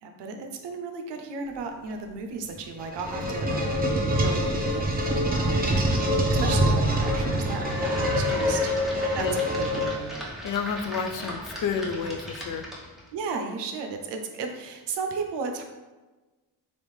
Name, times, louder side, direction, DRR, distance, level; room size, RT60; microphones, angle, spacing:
voice 1, 0.0-3.9 4.2-8.7 9.1-10.1 13.1-15.6, right 4 dB, 90° right, 4 dB, 0.6 m, -35 dB
sound 1, 2.6-10.3, equal, 20° right, 0.6 m, -25 dB
sound 2, 5.3-13.1, equal, ahead, 0.9 m, -37 dB
voice 2, 10.4-12.7, left 6 dB, 50° left, 6 dB, 0.4 m, -30 dB
3.4 x 2.5 x 3.2 m, 1.2 s
cardioid pair, 70°, 41 cm